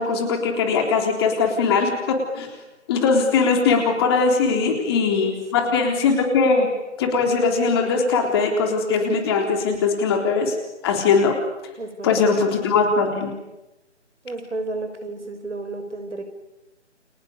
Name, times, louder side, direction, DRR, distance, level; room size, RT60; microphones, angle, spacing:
voice 1, 0.0-2.5 2.9-6.7 7.0-10.6 10.8-11.4 12.0-13.3, left 4 dB, 20° left, 3 dB, 3.7 m, -20 dB
voice 2, 5.2-5.7 11.8-12.3 14.2-16.2, right 2 dB, 75° right, 8 dB, 6.0 m, -32 dB
30.0 x 27.5 x 6.9 m, 1.0 s
figure-of-eight pair, 155°, 36 cm